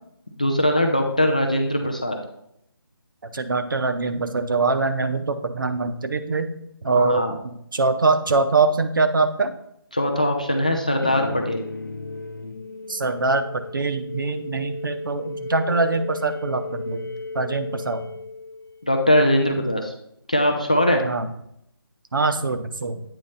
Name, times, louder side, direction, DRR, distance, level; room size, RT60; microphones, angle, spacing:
voice 1, 0.4-2.2 7.0-7.4 9.9-11.6 18.8-19.9 20.3-21.0, left 1 dB, 20° left, 3 dB, 0.3 m, -21 dB
voice 2, 3.3-6.5 6.8-9.5 12.9-18.0 21.0-21.3 22.1-23.0, right 3 dB, 55° right, 8 dB, 0.7 m, -23 dB
sound 1, 11.0-18.9, left 3 dB, 55° left, 0.7 m, -35 dB
8.7 x 3.1 x 5.4 m, 0.75 s
figure-of-eight pair, 175°, 13 cm